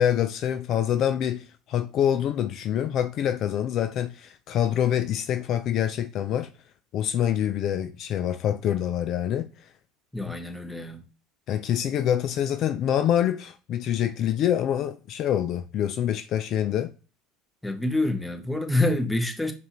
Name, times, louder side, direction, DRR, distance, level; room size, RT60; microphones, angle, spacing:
voice 1, 0.0-6.5 6.9-9.5 10.3-10.4 11.5-16.9, left 10 dB, 50° left, 0.3 m, -26 dB
voice 2, 10.1-11.0 17.6-19.5, left 2 dB, 5° left, 0.9 m, -26 dB
5.3 x 2.5 x 3.0 m
hypercardioid pair, 75°, 0 cm